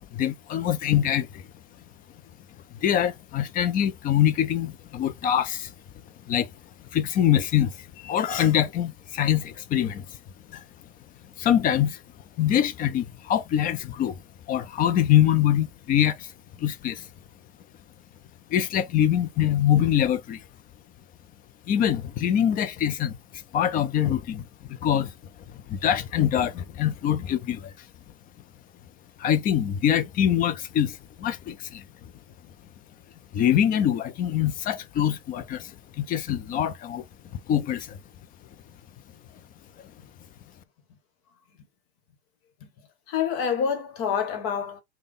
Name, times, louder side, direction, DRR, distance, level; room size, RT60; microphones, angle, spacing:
voice 1, 0.1-1.4 2.8-5.7 6.3-6.5 6.9-10.1 10.5-10.6 11.4-12.0 12.4-14.2 14.5-16.3 16.6-17.1 18.5-20.4 21.7-25.1 25.5-27.7 29.2-31.8 33.3-37.0 37.3-38.0 39.8-39.9, left 10 dB, 25° left, 0.5 m, -24 dB
voice 2, 43.1-44.8, left 7 dB, 45° left, 1.2 m, -27 dB
3.4 x 2.3 x 3.7 m
hypercardioid pair, 120°, 31 cm